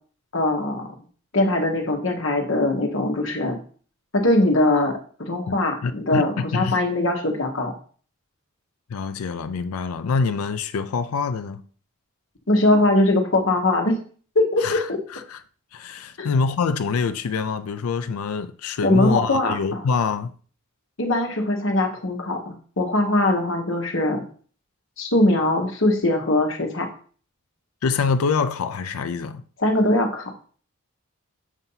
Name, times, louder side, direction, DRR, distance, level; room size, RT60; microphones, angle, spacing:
voice 1, 0.3-0.9 1.3-3.6 4.1-7.7 12.5-14.0 14.3-14.6 14.9-15.0 16.2-16.3 18.8-19.8 21.0-24.2 25.0-26.9 29.6-30.3, left 1 dB, 60° left, 1.3 m, -21 dB
voice 2, 5.5-6.8 8.9-11.6 14.6-15.4 15.7-20.3 27.8-29.4, left 5 dB, 90° left, 0.4 m, -25 dB
7.2 x 2.7 x 5.5 m
head